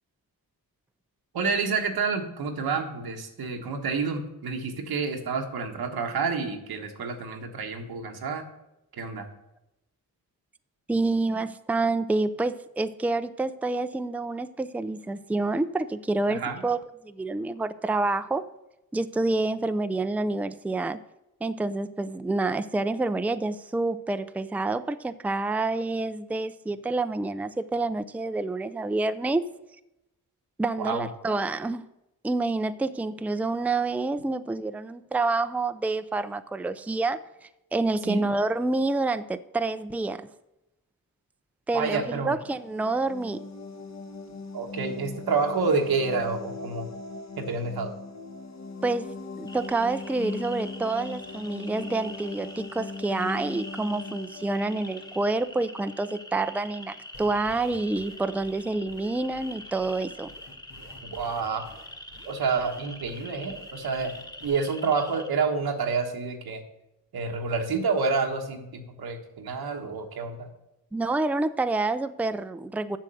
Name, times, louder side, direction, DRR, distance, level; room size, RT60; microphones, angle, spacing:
voice 1, 1.3-8.5 8.9-9.3 16.3-16.6 30.8-31.1 38.0-38.2 41.7-42.3 44.5-46.9 47.4-47.9 61.1-61.6 62.2-64.1 64.4-66.6 67.1-70.5, right 4 dB, 90° right, 4 dB, 1.4 m, -28 dB
voice 2, 10.9-18.5 18.9-21.0 21.4-29.4 30.6-31.8 32.2-40.3 41.7-43.4 48.8-49.1 49.4-60.3 70.9-73.0, right 2 dB, 5° right, 11 dB, 0.4 m, -28 dB
sound 1, 42.4-56.0, left 3 dB, 50° left, 1.3 m, -40 dB
sound 2, 49.5-65.3, left 1 dB, 10° left, 1.3 m, -45 dB
sound 3, 57.1-64.5, left 1 dB, 75° left, 1.8 m, -51 dB
7.4 x 6.5 x 7.7 m, 0.91 s
cardioid pair, 55°, 36 cm